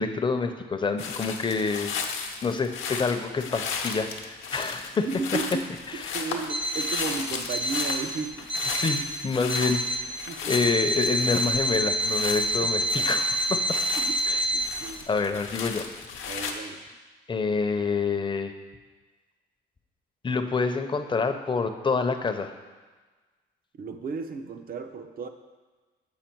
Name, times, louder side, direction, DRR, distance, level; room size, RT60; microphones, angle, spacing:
voice 1, 0.0-1.9 2.4-5.1 5.9-6.3 8.7-13.8 14.3-14.4 15.1-15.9 17.3-18.5 20.2-22.5, left 4 dB, 25° left, 7 dB, 0.6 m, -27 dB
sound 1, 1.0-16.5, left 5 dB, 80° left, 0.8 m, -35 dB
voice 2, 5.0-5.6 6.1-8.5 10.3-10.6 12.6-13.1 14.0-14.2 14.5-15.1 16.2-16.8 23.8-25.3, right 4 dB, 45° right, 8 dB, 0.6 m, -34 dB
Alarm, 6.5-7.1 7.5-8.1 8.5-9.1 9.5-10.1 10.5-14.6, right 1 dB, 75° right, 1.8 m, -27 dB
7.4 x 4.9 x 4.5 m, 1.3 s
cardioid pair, 90°, 20 cm